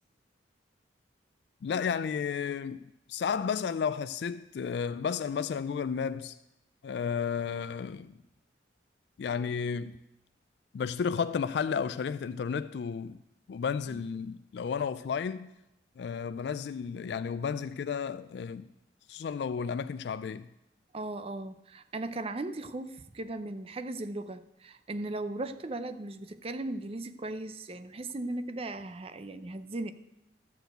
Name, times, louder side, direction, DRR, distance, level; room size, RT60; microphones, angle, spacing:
voice 1, 1.6-2.8 3.1-6.4 6.8-8.1 9.2-10.0 10.7-13.2 13.5-15.5 16.0-18.7 19.1-20.5, left 6 dB, 65° left, 0.3 m, -32 dB
voice 2, 20.9-29.9, right 2 dB, 30° right, 0.5 m, -37 dB
13.0 x 4.6 x 7.8 m
head